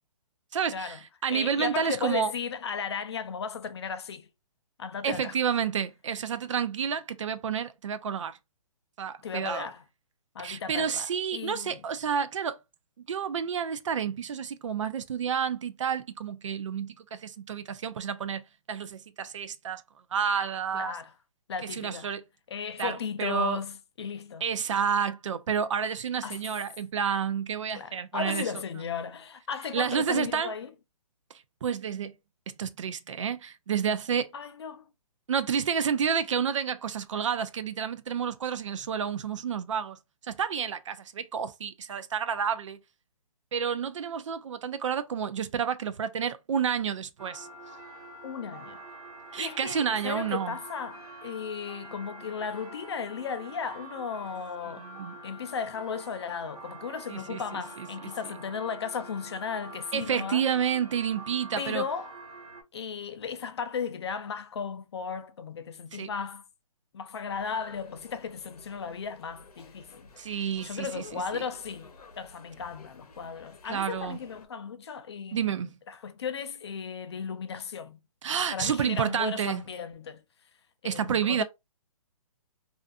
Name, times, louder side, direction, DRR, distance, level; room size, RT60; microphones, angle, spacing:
voice 1, 0.5-2.3 5.0-8.4 9.0-9.7 10.4-12.6 13.1-19.8 20.1-21.0 21.7-22.2 22.8-23.6 24.4-28.4 29.7-30.5 31.6-32.1 32.5-34.3 35.3-40.0 40.2-42.8 43.5-47.5 49.3-50.6 54.8-55.2 57.1-57.9 59.9-61.8 65.9-66.1 70.2-71.4 73.6-74.2 75.3-75.8 78.2-79.6 80.8-81.4, right 7 dB, 55° right, 0.4 m, -30 dB
voice 2, 1.3-4.3 4.8-5.3 9.2-9.8 10.3-11.8 20.7-21.1 21.5-22.1 22.5-24.4 26.2-26.4 27.7-30.7 34.3-34.8 48.2-48.8 49.4-54.9 55.2-60.4 61.6-62.1 62.7-66.4 66.9-75.6 75.9-78.0 78.5-80.2 80.8-81.4, left 6 dB, 45° left, 0.4 m, -35 dB
sound 1, 47.2-62.6, right 2 dB, 75° right, 1.1 m, -46 dB
sound 2, 67.3-74.5, left 3 dB, 90° left, 0.7 m, -53 dB
2.5 x 2.4 x 2.3 m
hypercardioid pair, 165°, 19 cm